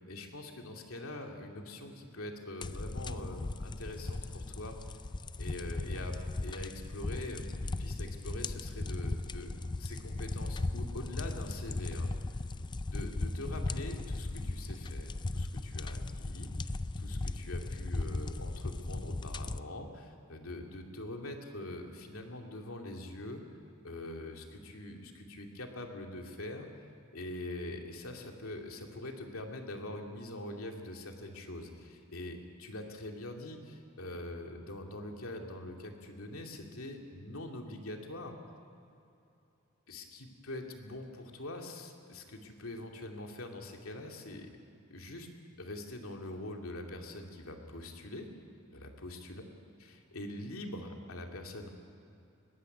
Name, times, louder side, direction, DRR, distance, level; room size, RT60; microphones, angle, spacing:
voice 1, 0.1-4.8 5.4-9.5 9.8-12.1 12.9-23.4 23.8-26.8 27.1-38.3 39.9-44.5 44.9-45.3 45.6-48.3 48.7-49.4 49.8-51.7, left 1 dB, 80° left, 2 dB, 2.5 m, -43 dB
sound 1, 2.6-19.6, left 2 dB, 20° left, 0.4 m, -37 dB
20.0 x 16.0 x 9.8 m, 2.7 s
head